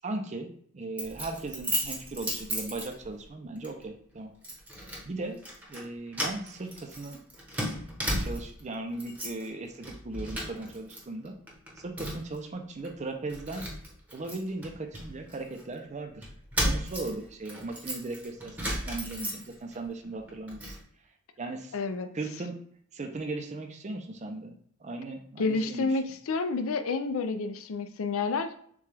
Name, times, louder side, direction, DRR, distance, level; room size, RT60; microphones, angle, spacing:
voice 1, 0.0-4.3 5.0-5.4 5.7-7.2 8.0-11.4 11.8-13.7 14.1-16.3 16.6-20.8 21.4-21.8 22.1-22.6 22.9-26.0, right 2 dB, 30° right, 5 dB, 0.5 m, -37 dB
Keys jangling, 1.0-3.3 3.6-3.8 4.4-5.1 5.4-5.8 6.1-8.6 8.9-9.5 9.8-11.0 11.3-12.4 12.8-12.9 13.3-15.6 16.2-19.8 20.1-20.8, equal, 5° right, 0.9 m, -35 dB
voice 2, 21.7-22.1 25.4-28.5, left 4 dB, 65° left, 9 dB, 0.4 m, -29 dB
6.7 x 2.3 x 3.3 m, 0.62 s
head